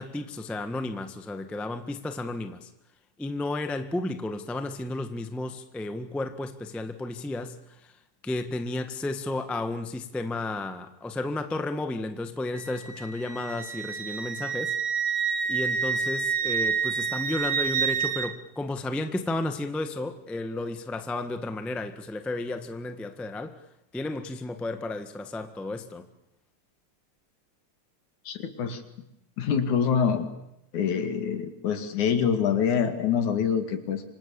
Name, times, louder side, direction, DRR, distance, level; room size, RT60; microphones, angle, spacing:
voice 1, 0.0-2.7 3.2-14.8 15.0-23.6 23.9-26.1, left 2 dB, ahead, 0.6 m, -33 dB
Wind instrument woodwind instrument, 12.5-18.3, right 6 dB, 60° right, 2.6 m, -28 dB
voice 2, 28.3-28.8 29.4-30.3 30.7-34.0, left 7 dB, 85° left, 3.6 m, -25 dB
26.5 x 25.5 x 7.2 m
omnidirectional pair, 3.3 m